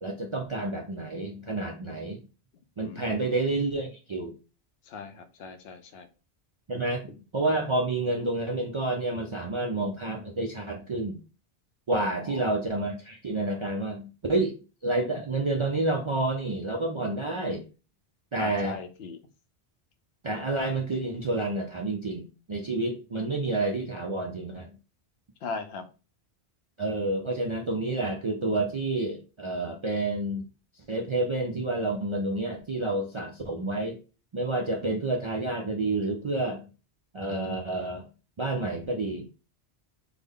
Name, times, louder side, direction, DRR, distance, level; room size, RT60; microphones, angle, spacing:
voice 1, 0.0-2.2 2.8-4.3 6.7-11.2 11.9-14.6 14.8-17.6 18.3-18.8 20.2-24.7 26.8-30.4 30.9-34.0 34.3-36.6 37.1-38.1 38.4-39.3, right 2 dB, 50° right, 1 dB, 0.3 m, -29 dB
voice 2, 2.8-3.4 4.9-6.1 12.3-12.4 18.4-19.2 25.4-25.8, left 4 dB, 70° left, 8 dB, 0.8 m, -39 dB
3.4 x 2.1 x 3.6 m, 0.32 s
omnidirectional pair, 1.1 m